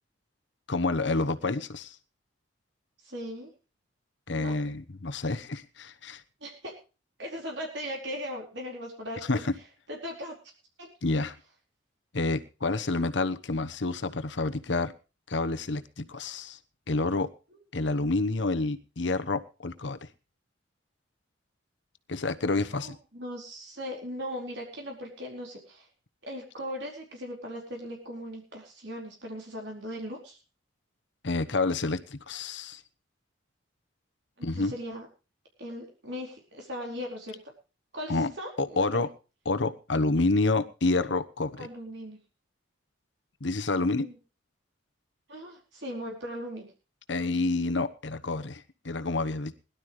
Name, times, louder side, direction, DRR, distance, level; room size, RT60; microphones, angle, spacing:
voice 1, 0.7-2.0 4.3-6.2 9.3-9.5 11.0-11.3 12.1-14.9 15.3-16.6 16.9-17.3 17.7-20.1 22.1-23.0 31.2-32.8 34.4-34.7 38.1-38.3 38.6-39.1 39.4-41.7 43.4-44.1 47.1-49.5, left 3 dB, 70° left, 11 dB, 1.1 m, -28 dB
voice 2, 3.0-3.5 4.4-4.5 6.4-6.7 7.2-9.4 9.9-10.3 10.8-10.9 22.7-25.9 26.2-30.4 34.4-35.1 35.6-37.5 37.9-39.0 41.6-42.2 43.7-44.2 45.3-46.7, equal, 65° right, 0 dB, 4.5 m, -38 dB
21.0 x 12.0 x 3.2 m, 0.32 s
head